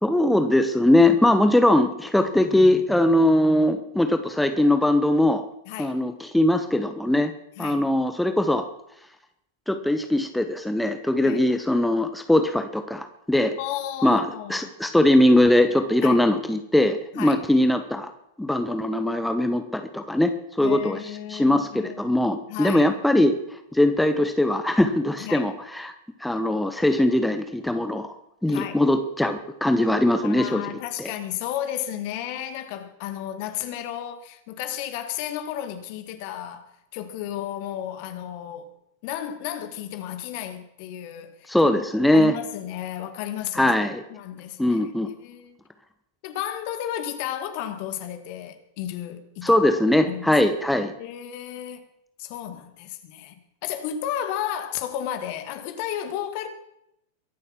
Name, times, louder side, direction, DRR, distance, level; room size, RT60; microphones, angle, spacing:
voice 1, 0.0-5.4 5.8-7.3 7.6-8.7 9.7-13.5 14.0-14.2 14.5-18.1 18.4-20.3 20.6-21.0 21.3-25.9 26.2-28.1 28.4-30.6 31.0-31.1 41.5-42.3 43.5-44.0 44.6-45.1 49.4-50.9, left 1 dB, 5° left, 1.1 m, -21 dB
voice 2, 5.7-6.0 7.6-7.9 11.2-11.4 13.6-14.7 16.0-16.2 17.1-17.4 20.6-22.1 22.5-23.0 25.2-25.5 28.5-28.8 30.1-38.7 39.0-41.8 42.1-43.7 44.1-45.6 46.2-49.6 50.1-50.4 51.0-51.8 52.2-56.5, left 11 dB, 45° left, 1.8 m, -33 dB
23.0 x 7.8 x 5.9 m
figure-of-eight pair, 90°, 0 cm